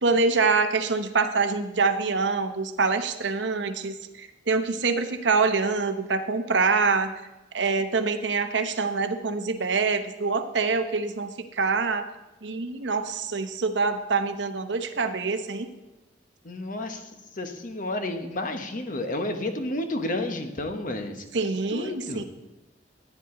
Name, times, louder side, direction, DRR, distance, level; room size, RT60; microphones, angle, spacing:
voice 1, 0.0-7.1 7.5-12.0 12.4-15.7 21.3-22.2, right 4 dB, 75° right, 8 dB, 0.9 m, -25 dB
voice 2, 16.4-17.0 17.4-21.3 21.7-22.2, left 1 dB, 50° left, 6 dB, 1.1 m, -31 dB
14.0 x 9.2 x 3.8 m, 1.1 s
head